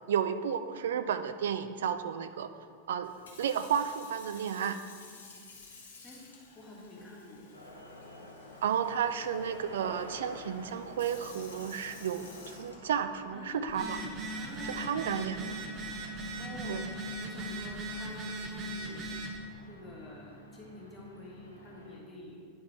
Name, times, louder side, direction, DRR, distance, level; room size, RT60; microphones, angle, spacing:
voice 1, 0.1-2.5 2.9-3.1 3.4-4.8 8.6-14.0 14.8-15.6 16.7-16.8, right 8 dB, 60° right, 10 dB, 0.4 m, -32 dB
Sink (filling or washing) / Fill (with liquid), 3.0-13.3 13.9-14.2, left 4 dB, 65° left, 2.0 m, -54 dB
voice 2, 6.6-7.5 13.3-14.9 16.4-16.8 17.2-19.1 19.7-22.4, left 2 dB, 15° left, -4 dB, 1.8 m, -47 dB
sound 1, 7.5-22.0, left 1 dB, 85° left, 1.1 m, -50 dB
Telephone, 13.7-19.4, right 1 dB, 35° right, 1.0 m, -39 dB
10.0 x 4.7 x 4.4 m, 2.2 s
figure-of-eight pair, 90°, 0 cm